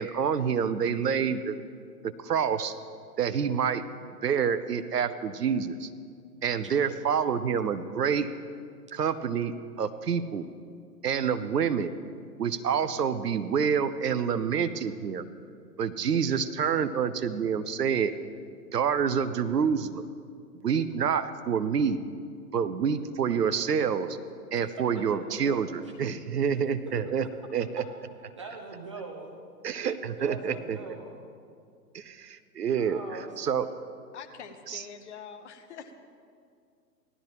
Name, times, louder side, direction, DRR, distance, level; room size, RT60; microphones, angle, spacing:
voice 1, 0.0-1.6 2.0-2.7 3.2-3.8 4.2-5.9 6.4-8.3 8.9-10.5 11.0-11.9 12.4-15.2 15.8-18.1 18.7-20.0 20.6-22.0 22.5-24.1 24.5-27.2 27.5-27.8 29.6-30.8 31.9-33.0 33.4-33.7 34.7-34.8, right 7 dB, 70° right, 12 dB, 0.7 m, -27 dB
voice 2, 25.5-25.9 26.5-26.6 28.4-29.4 30.2-31.2 32.8-33.3, right 4 dB, 20° right, 0 dB, 0.5 m, -42 dB
voice 3, 34.1-35.9, left 6 dB, 45° left, 7 dB, 1.0 m, -44 dB
17.0 x 12.0 x 3.0 m, 2.3 s
figure-of-eight pair, 115°, 49 cm